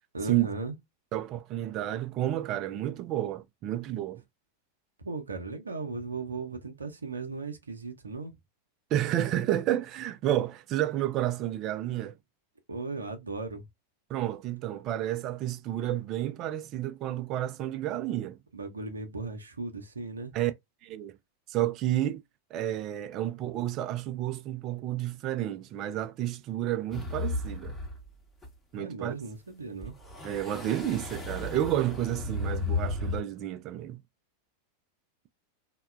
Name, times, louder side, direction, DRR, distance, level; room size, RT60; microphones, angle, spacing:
voice 1, 0.1-0.8 5.0-8.4 12.7-13.7 18.5-20.3 28.8-29.9, right 4 dB, 75° right, 0.6 m, -37 dB
voice 2, 1.1-4.2 8.9-12.2 14.1-18.4 20.3-20.5 20.8-21.2 21.5-22.2 22.5-27.8 28.7-29.2 30.2-34.0, right 13 dB, 35° right, 0.3 m, -30 dB
sound 1, 26.9-28.1 28.4-28.5 29.8-33.2, left 2 dB, 10° left, 0.9 m, -34 dB
2.8 x 2.2 x 2.2 m
figure-of-eight pair, 90°, 0 cm